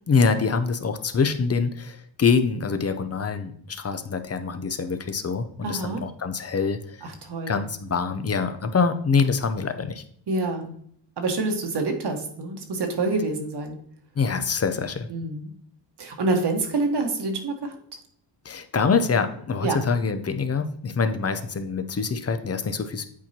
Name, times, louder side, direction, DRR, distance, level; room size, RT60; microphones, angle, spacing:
voice 1, 0.1-7.0 7.5-10.0 14.2-15.1 18.4-23.1, left 5 dB, 35° left, 9 dB, 0.6 m, -25 dB
voice 2, 5.6-6.0 7.0-7.6 10.3-10.7 11.2-13.8 15.1-15.5 16.0-17.7 19.6-19.8, right 3 dB, 60° right, 3 dB, 1.4 m, -27 dB
8.4 x 4.5 x 2.8 m, 0.64 s
cardioid pair, 95°, 45 cm